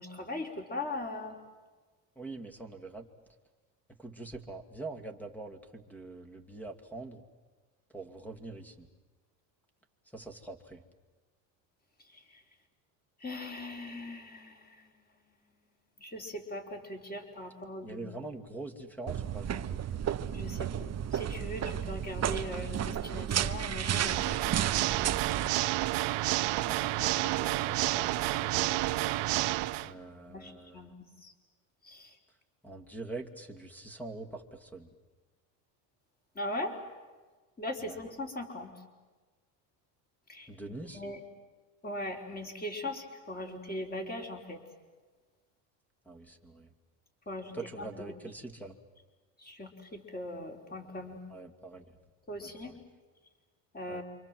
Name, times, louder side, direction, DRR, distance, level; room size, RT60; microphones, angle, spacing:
voice 1, 0.0-1.4 12.1-12.4 13.2-14.9 16.0-18.1 20.3-24.4 29.9-31.3 31.8-32.2 36.3-36.8 37.6-38.7 40.3-40.5 40.9-41.2 41.8-44.6 47.3-48.1 49.4-51.2 52.3-52.7 53.7-54.0, left 1 dB, 20° left, 2 dB, 4.6 m, -40 dB
voice 2, 2.2-3.1 4.0-7.2 7.9-8.9 10.1-10.8 17.8-20.0 26.6-28.8 29.8-30.9 32.6-34.9 37.8-38.0 40.5-41.0 46.1-46.7 47.5-48.8 51.3-51.8 52.4-52.8 53.9-54.0, right 2 dB, 5° left, 5 dB, 2.3 m, -44 dB
sound 1, 19.1-25.5, right 9 dB, 30° right, 1.0 m, -33 dB
Water / Mechanisms, 23.9-29.9, right 17 dB, 60° right, 1.0 m, -30 dB
28.5 x 25.0 x 7.7 m, 1.3 s
supercardioid pair, 105°, 49 cm